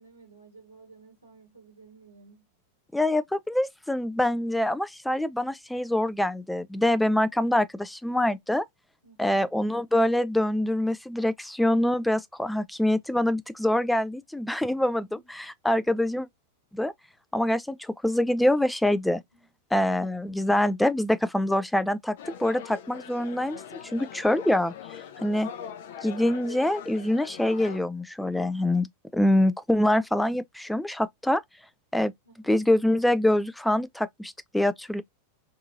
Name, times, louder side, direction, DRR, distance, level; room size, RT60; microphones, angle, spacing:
voice 1, 0.0-2.4 9.0-9.4 14.9-15.3 15.7-15.9 19.3-19.5 25.2-25.6 32.3-32.6, right 4 dB, 85° right, 1.9 m, -54 dB
voice 2, 2.9-8.6 9.2-16.3 16.7-16.9 17.3-19.2 19.7-23.6 23.9-24.7 25.2-25.5 26.0-28.9 29.1-31.4 31.9-32.1 32.5-35.0, left 1 dB, 5° left, 0.3 m, -25 dB
sound 1, 22.2-27.8, left 8 dB, 55° left, 0.5 m, -42 dB
3.5 x 2.8 x 2.5 m
figure-of-eight pair, 90°, 0 cm